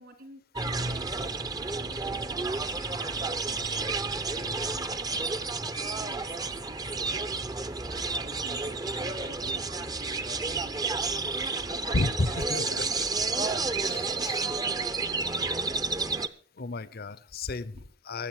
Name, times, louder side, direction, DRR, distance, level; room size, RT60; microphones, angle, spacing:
voice 1, 0.0-3.9 4.3-7.3 7.8-10.9 11.4-15.4 17.7-17.8, right 1 dB, 60° right, 7 dB, 3.0 m, -50 dB
sound 1, 0.5-16.3, right 3 dB, 20° right, 0.7 m, -31 dB
voice 2, 11.9-12.8 13.8-14.4 16.6-18.3, left 2 dB, 55° left, 18 dB, 0.8 m, -32 dB
20.5 x 7.9 x 4.8 m, 0.43 s
head